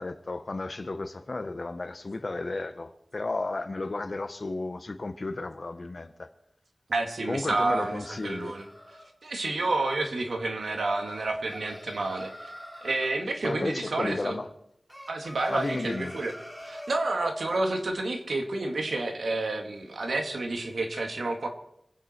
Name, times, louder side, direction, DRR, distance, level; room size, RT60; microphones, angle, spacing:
voice 1, 0.0-6.3 7.3-8.5 13.4-14.5 15.5-16.1, left 2 dB, 55° left, 1.3 m, -33 dB
voice 2, 6.9-8.6 9.2-12.5 12.8-14.4 15.1-16.3 16.6-21.5, right 2 dB, 90° right, 2.2 m, -29 dB
sound 1, 7.1-9.1 11.1-13.1 14.9-17.0, equal, 15° right, 3.8 m, -45 dB
25.0 x 9.6 x 4.5 m
wide cardioid pair, 55°, 0 cm